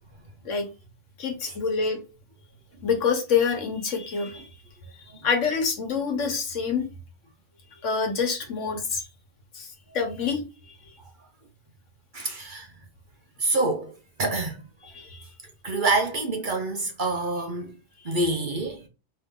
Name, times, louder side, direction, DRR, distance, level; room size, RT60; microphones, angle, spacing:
voice 1, 1.2-2.0 2.8-4.5 5.2-6.9 7.8-9.1 9.5-10.4 14.9-15.2, left 5 dB, 75° left, 1.5 m, -26 dB
voice 2, 12.1-12.7 13.4-14.6 15.6-17.8 18.0-18.9, right 2 dB, 45° right, 0.8 m, -27 dB
4.1 x 3.3 x 3.7 m
omnidirectional pair, 1.3 m